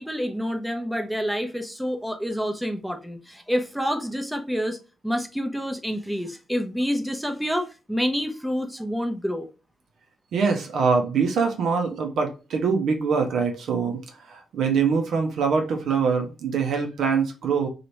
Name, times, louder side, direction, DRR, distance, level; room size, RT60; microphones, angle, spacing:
voice 1, 0.0-4.8 5.0-9.5, equal, ahead, 0.7 m, -28 dB
voice 2, 10.3-14.0 14.3-17.7, right 5 dB, 60° right, 0.6 m, -23 dB
2.9 x 2.4 x 3.0 m
hypercardioid pair, 40°, 0 cm